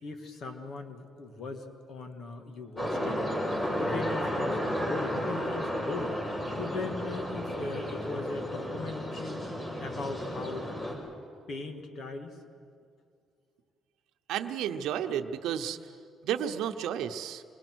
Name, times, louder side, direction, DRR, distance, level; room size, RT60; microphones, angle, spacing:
voice 1, 0.0-3.2 3.8-6.2 6.6-9.4 9.8-10.7 11.5-12.4, left 3 dB, 65° left, 6 dB, 2.2 m, -39 dB
sound 1, 2.8-10.9, equal, 25° left, 5.8 m, -33 dB
voice 2, 14.3-15.9 16.2-17.4, right 9 dB, 85° right, 6 dB, 0.8 m, -32 dB
26.5 x 20.5 x 6.3 m, 2.3 s
cardioid pair, 90°, 0 cm